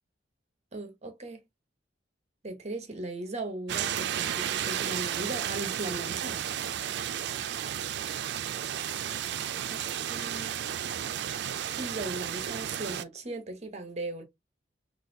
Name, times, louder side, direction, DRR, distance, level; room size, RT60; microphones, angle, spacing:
voice 1, 0.7-1.4 2.4-6.5 9.7-9.8 10.1-10.5 11.8-14.2, right 2 dB, 40° right, 0.9 m, -38 dB
sound 1, 3.7-13.0, right 10 dB, 65° right, 0.3 m, -33 dB
3.9 x 2.4 x 2.6 m
head